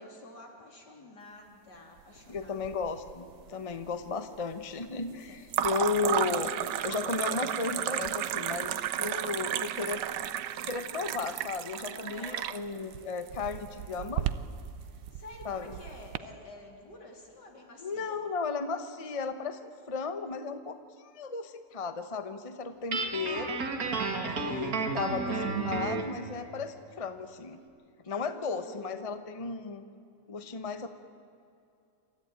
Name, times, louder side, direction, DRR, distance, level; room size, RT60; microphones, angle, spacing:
voice 1, 0.0-2.6 5.3-5.4 9.1-10.0 11.9-12.4 14.9-18.2 23.9-24.8 28.0-29.0, left 1 dB, 75° left, 0 dB, 4.0 m, -49 dB
voice 2, 2.3-6.5 6.8-10.0 10.7-14.3 15.4-15.7 17.8-23.6 24.3-27.6 28.1-29.8 30.3-30.9, left 4 dB, 25° left, 9 dB, 0.9 m, -35 dB
sound 1, 2.4-3.1 3.4-4.0 5.5-16.2, right 11 dB, 85° right, 1.4 m, -33 dB
Guitar, 22.9-26.1, right 4 dB, 55° right, 2.2 m, -32 dB
28.0 x 13.5 x 9.0 m, 2.5 s
omnidirectional pair, 1.8 m